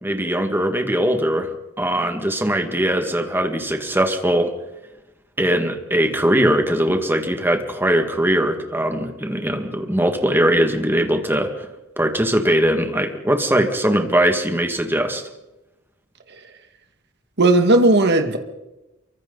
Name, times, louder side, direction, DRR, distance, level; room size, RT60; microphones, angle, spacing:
voice 1, 0.0-4.5 5.4-11.7 12.0-15.2, right 1 dB, 10° right, 5 dB, 2.0 m, -20 dB
voice 2, 17.4-18.4, right 2 dB, 55° right, 6 dB, 2.1 m, -15 dB
28.5 x 24.0 x 4.1 m, 0.99 s
head